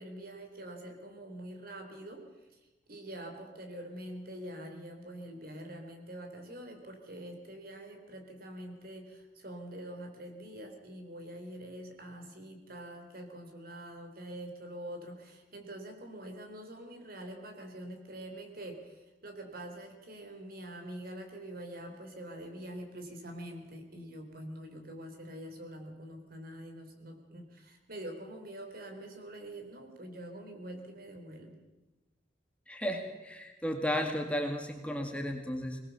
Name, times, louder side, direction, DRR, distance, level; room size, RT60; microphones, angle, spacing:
voice 1, 0.0-2.2 2.5-2.6 2.9-31.6, right 1 dB, 55° right, 4 dB, 3.6 m, -45 dB
voice 2, 32.7-35.8, equal, 5° left, 3 dB, 2.0 m, -34 dB
21.0 x 20.0 x 7.0 m, 1.1 s
head